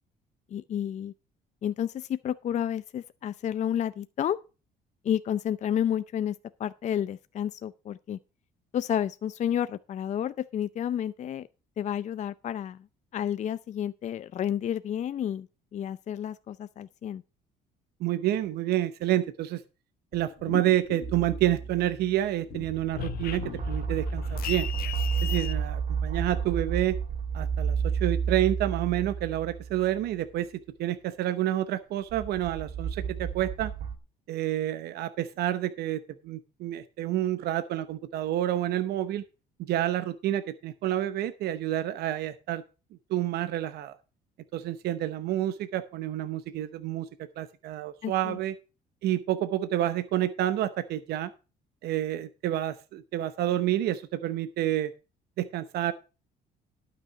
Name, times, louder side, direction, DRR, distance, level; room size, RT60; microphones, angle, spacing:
voice 1, 0.5-1.1 1.6-4.4 5.0-8.2 8.7-11.5 11.8-12.9 13.1-15.5 15.7-17.2 48.0-48.4, left 10 dB, 45° left, 0.5 m, -31 dB
voice 2, 18.0-19.6 20.1-24.7 25.2-27.0 27.3-33.7 34.3-39.2 39.6-42.6 43.1-44.0 44.5-47.1 47.4-48.5 49.0-51.3 51.8-54.9 55.4-55.9, right 13 dB, 75° right, 0.9 m, -29 dB
sound 1, 20.1-21.8 22.1-25.5, left 11 dB, 60° left, 1.1 m, -37 dB
sound 2, 21.0-22.1 22.5-30.1 32.1-34.0, right 7 dB, 55° right, 2.1 m, -32 dB
12.0 x 6.1 x 5.9 m
cardioid pair, 110°, 17 cm